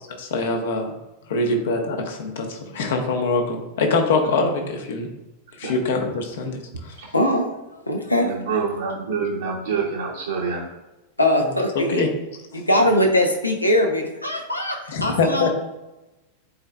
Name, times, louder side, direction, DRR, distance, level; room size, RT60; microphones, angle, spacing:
voice 1, 0.2-0.9 1.3-5.1 5.6-6.9 11.7-12.1 12.5-12.6 14.9-15.5, left 3 dB, 60° left, 4 dB, 1.1 m, -24 dB
voice 2, 7.1-7.5 7.9-8.3 11.2-12.1 12.5-15.5, left 1 dB, 85° left, 3 dB, 0.9 m, -21 dB
voice 3, 8.1-10.7, right 5 dB, 65° right, -5 dB, 1.1 m, -26 dB
10.0 x 4.3 x 2.3 m, 1.0 s
figure-of-eight pair, 90°, 0 cm